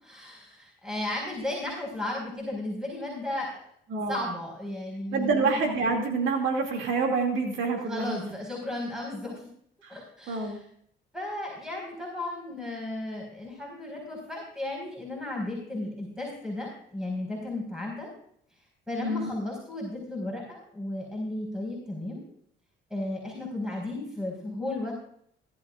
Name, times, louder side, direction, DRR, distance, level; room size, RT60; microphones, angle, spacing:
voice 1, 0.0-3.5 4.1-5.6 7.9-9.4 9.9-10.6 11.1-18.1 18.9-22.2 22.9-24.9, left 1 dB, 5° right, -2 dB, 5.0 m, -34 dB
voice 2, 3.9-4.3 5.1-8.3 9.8-10.0 10.3-10.6 19.0-19.3, right 4 dB, 80° right, 2 dB, 2.5 m, -27 dB
18.0 x 12.5 x 2.5 m, 0.65 s
cardioid pair, 90°, 20 cm